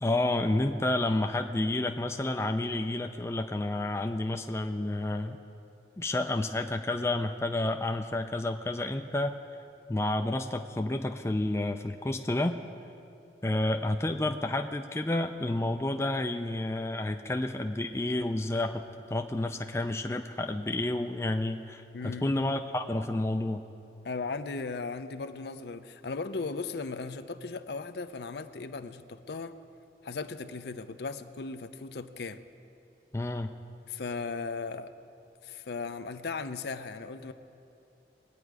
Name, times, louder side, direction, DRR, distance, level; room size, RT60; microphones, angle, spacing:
voice 1, 0.0-5.4 6.0-9.4 9.9-12.6 13.4-18.8 19.1-23.6 33.1-33.5, left 2 dB, 15° left, 5 dB, 0.4 m, -30 dB
voice 2, 21.9-22.4 24.0-29.6 30.0-32.4 33.9-34.9 35.4-37.3, left 4 dB, 65° left, 10 dB, 0.5 m, -37 dB
21.0 x 9.1 x 4.8 m, 2.7 s
head